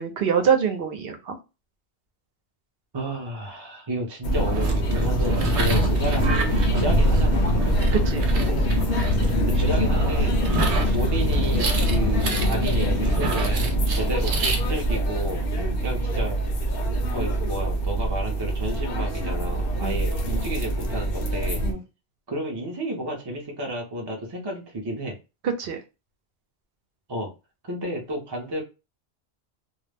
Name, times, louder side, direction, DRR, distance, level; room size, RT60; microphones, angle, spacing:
voice 1, 0.0-1.4 5.7-5.8 7.9-8.3 15.6-15.7 19.8-20.0 21.6-21.8 25.4-25.8, right 7 dB, 65° right, 5 dB, 0.8 m, -25 dB
voice 2, 2.9-7.6 9.4-10.4 10.9-15.4 15.8-16.4 17.1-21.6 22.3-25.2 27.1-27.3 27.7-28.6, right 1 dB, 30° right, 0 dB, 0.5 m, -31 dB
sound 1, 4.2-21.7, equal, 60° left, 0.7 m, -23 dB
sound 2, 4.5-14.6, right 3 dB, 90° right, 1.0 m, -31 dB
2.3 x 2.0 x 3.2 m, 0.28 s
omnidirectional pair, 1.1 m